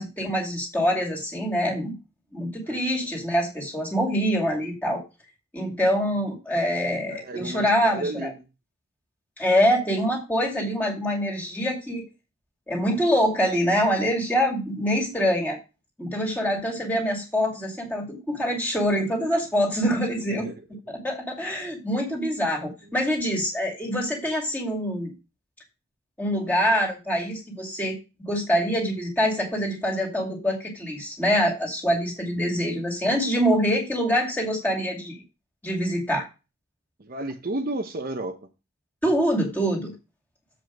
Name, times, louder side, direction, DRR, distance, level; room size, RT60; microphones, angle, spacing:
voice 1, 0.0-1.9 2.3-5.0 5.5-8.3 9.4-12.0 12.7-15.6 16.0-20.5 20.9-25.1 26.2-35.2 35.6-36.3 39.0-39.9, equal, 10° left, 2.3 m, -25 dB
voice 2, 2.6-3.1 6.9-8.5 20.2-20.8 32.5-32.7 37.0-38.4, right 2 dB, 45° right, 0.8 m, -33 dB
7.5 x 5.1 x 6.1 m
head